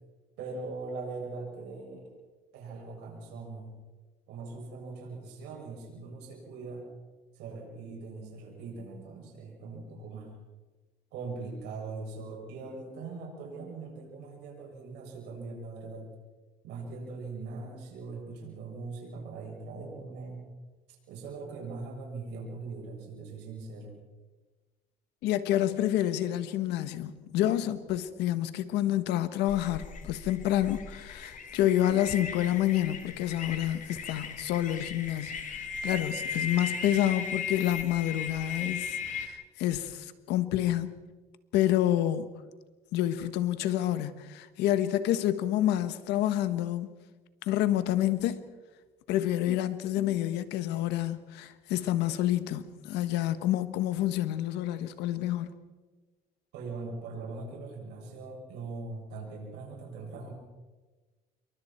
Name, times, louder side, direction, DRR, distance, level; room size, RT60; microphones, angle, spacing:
voice 1, 0.4-2.1 2.5-3.8 4.3-6.9 7.3-10.3 11.1-16.1 16.6-20.5 21.1-24.0 56.5-60.3, right 3 dB, 90° right, 7.4 m, -41 dB
voice 2, 25.2-35.3 35.8-41.0 41.5-42.3 42.9-46.9 47.5-48.4 49.1-55.5, left 12 dB, 90° left, 1.5 m, -28 dB
Tropical Dawn, 29.5-39.3, left 5 dB, 50° left, 2.6 m, -37 dB
27.5 x 23.5 x 4.6 m
cardioid pair, 110°, 17 cm